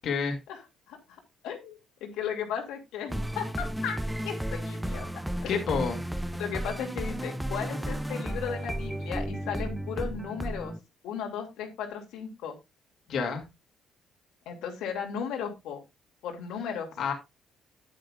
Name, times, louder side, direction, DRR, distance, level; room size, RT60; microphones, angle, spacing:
voice 1, 0.0-0.4 5.5-6.0 13.1-13.4 17.0-17.1, left 6 dB, 55° left, 3 dB, 2.5 m, -28 dB
voice 2, 0.9-4.0 4.2-5.1 5.4-5.6 6.4-10.7 11.0-12.6 14.5-15.8 16.2-16.9, left 7 dB, 85° left, 3 dB, 2.7 m, -35 dB
sound 1, 3.1-10.8, right 1 dB, 5° right, 0.5 m, -33 dB
10.0 x 10.0 x 2.4 m, 0.23 s
cardioid pair, 140°, 0 cm